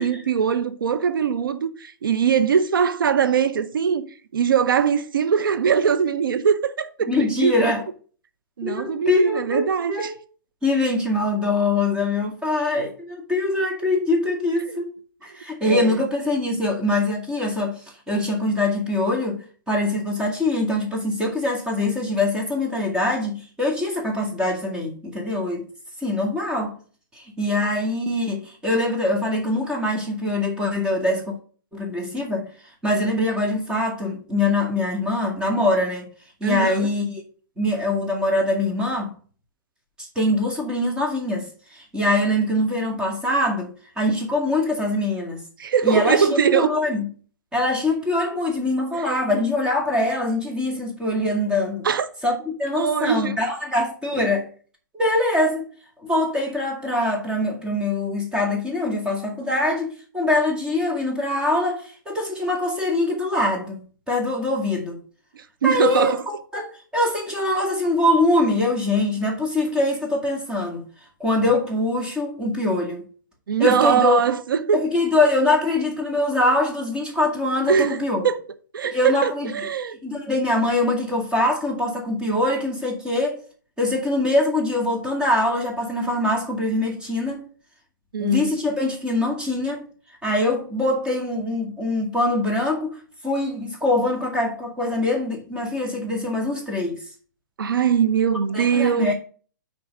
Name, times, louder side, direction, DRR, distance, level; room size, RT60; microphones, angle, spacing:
voice 1, 0.0-4.0 4.3-7.6 8.6-10.1 14.7-14.8 15.7-16.0 27.6-27.7 36.4-36.9 45.6-46.7 48.9-49.2 51.8-52.1 52.7-53.4 54.2-54.3 65.4-66.2 66.5-66.6 73.5-74.8 77.7-78.0 78.2-78.4 78.7-80.0 88.1-88.5 97.6-99.1, right 7 dB, 85° right, 0.8 m, -21 dB
voice 2, 7.1-7.8 8.6-10.1 10.6-14.9 15.2-25.7 26.0-26.8 27.1-31.4 31.7-32.5 32.8-36.1 36.4-37.2 37.6-39.1 40.0-45.4 45.8-47.1 47.5-51.9 52.2-54.5 54.9-55.7 56.0-65.0 65.6-70.8 71.2-73.0 73.6-74.2 74.7-78.3 78.9-79.5 80.0-83.4 83.8-87.4 88.2-89.8 90.2-97.0 98.5-99.1, left 2 dB, 5° right, 2.0 m, -23 dB
6.0 x 4.7 x 6.3 m
hypercardioid pair, 145°, 11 cm